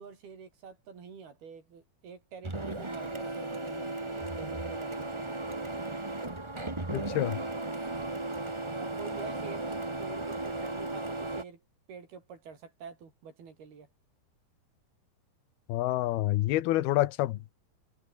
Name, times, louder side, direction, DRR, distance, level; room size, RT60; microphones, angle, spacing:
voice 1, 0.0-5.9 7.9-8.2 8.7-11.6 11.9-13.9, right 6 dB, 85° right, 6.7 m, -47 dB
Printer, 2.4-11.4, right 2 dB, 30° right, 0.5 m, -35 dB
voice 2, 6.9-7.4 15.7-17.5, left 15 dB, 90° left, 3.0 m, -28 dB
omnidirectional pair, 4.3 m